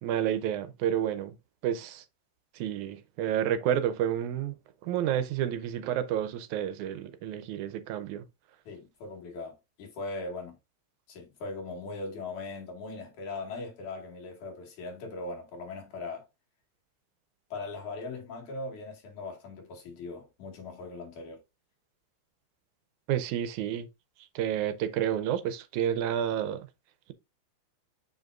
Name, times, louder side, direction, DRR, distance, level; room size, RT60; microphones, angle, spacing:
voice 1, 0.0-1.3 1.6-2.0 2.6-4.5 4.8-8.2 23.1-23.9 24.4-26.7, right 10 dB, 90° right, 2.1 m, -30 dB
voice 2, 8.6-10.6 11.1-16.2 17.5-21.4, left 3 dB, 90° left, 3.4 m, -39 dB
7.1 x 5.2 x 2.5 m
omnidirectional pair, 3.4 m